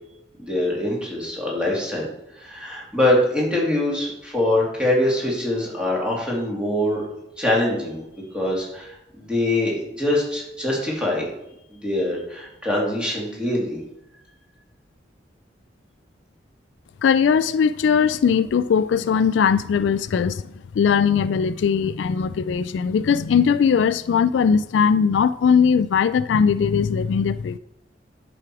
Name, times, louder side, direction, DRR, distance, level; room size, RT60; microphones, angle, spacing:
voice 1, 0.4-2.1 2.3-7.0 7.4-8.0 8.3-11.2 11.7-13.8, left 1 dB, 5° right, 2.9 m, -23 dB
voice 2, 17.0-20.4 20.8-27.6, left 6 dB, 75° left, 0.3 m, -19 dB
10.5 x 6.2 x 4.9 m
head